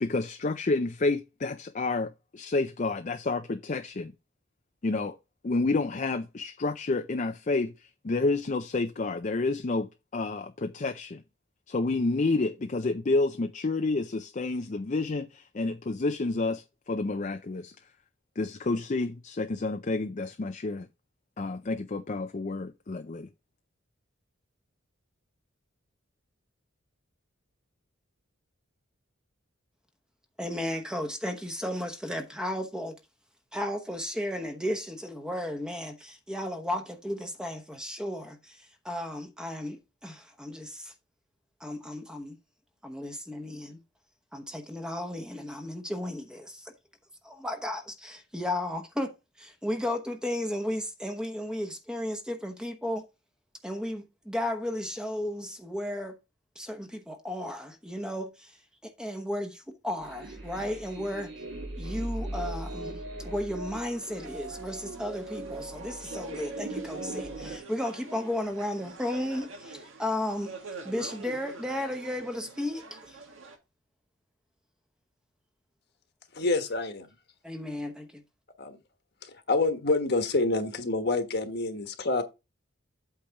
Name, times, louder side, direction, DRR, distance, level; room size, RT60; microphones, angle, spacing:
voice 1, 0.0-4.1 4.8-5.2 5.4-9.9 10.1-11.2 11.7-17.7 18.4-20.9 21.4-23.3, left 3 dB, 35° left, 0.5 m, -29 dB
voice 2, 30.4-33.0 33.5-40.9 41.6-42.4 42.8-43.8 44.3-46.7 47.2-49.1 49.4-53.0 53.6-56.1 56.6-58.6 58.8-61.3 61.8-70.5 70.8-73.2 77.4-78.1, left 1 dB, 5° right, 1.0 m, -34 dB
sound 1, 60.0-67.6, right 2 dB, 60° right, 2.0 m, -38 dB
sound 2, 64.0-73.6, right 3 dB, 75° right, 1.8 m, -47 dB
voice 3, 76.3-77.1 78.6-78.8 79.5-82.2, left 2 dB, 50° left, 1.3 m, -27 dB
8.5 x 3.4 x 5.8 m
head